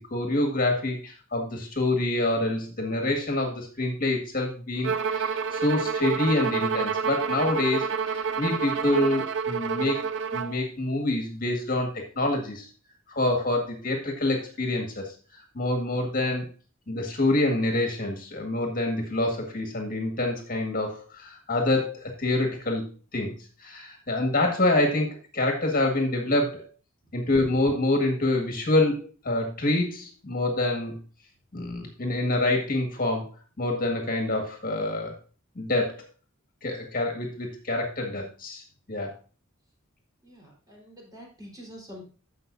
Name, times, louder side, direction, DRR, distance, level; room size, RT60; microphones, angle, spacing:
voice 1, 0.1-10.0 10.3-12.7 13.1-15.1 15.5-16.5 16.9-23.3 23.6-26.6 27.1-30.9 31.5-33.3 33.6-35.2 35.6-36.0 36.6-39.1, left 2 dB, 45° left, 2 dB, 1.8 m, -26 dB
Bowed string instrument, 4.8-10.6, right 6 dB, 65° right, 0.6 m, -28 dB
voice 2, 40.2-42.0, equal, 20° right, -3 dB, 4.0 m, -46 dB
15.5 x 5.6 x 2.6 m, 0.37 s
head